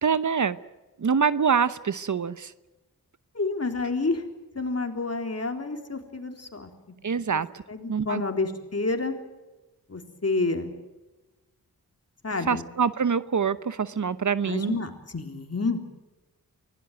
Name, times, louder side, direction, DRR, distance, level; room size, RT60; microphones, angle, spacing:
voice 1, 0.0-0.6 1.0-2.5 7.0-7.6 7.9-8.2 12.5-14.8, right 6 dB, 55° right, 15 dB, 0.9 m, -25 dB
voice 2, 3.3-4.2 4.6-6.7 7.3-7.4 7.7-9.1 9.9-10.7 12.2-12.6 14.4-15.9, left 3 dB, 45° left, 5 dB, 3.8 m, -29 dB
24.5 x 17.5 x 9.2 m, 1.1 s
cardioid pair, 45°, 35 cm